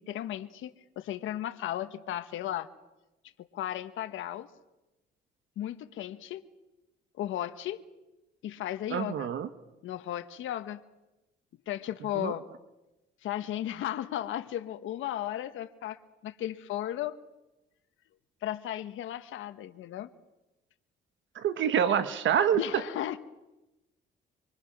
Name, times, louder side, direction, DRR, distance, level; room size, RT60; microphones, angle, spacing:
voice 1, 0.0-2.7 3.5-4.5 5.6-6.4 7.2-7.8 8.4-9.3 9.8-10.8 11.7-12.4 13.2-17.1 18.4-20.1 22.5-23.2, left 12 dB, 85° left, 10 dB, 1.3 m, -35 dB
voice 2, 8.9-9.5 12.1-12.3 21.3-22.8, right 8 dB, 70° right, 11 dB, 1.3 m, -26 dB
25.5 x 23.5 x 6.1 m, 1.0 s
cardioid pair, 90°, 20 cm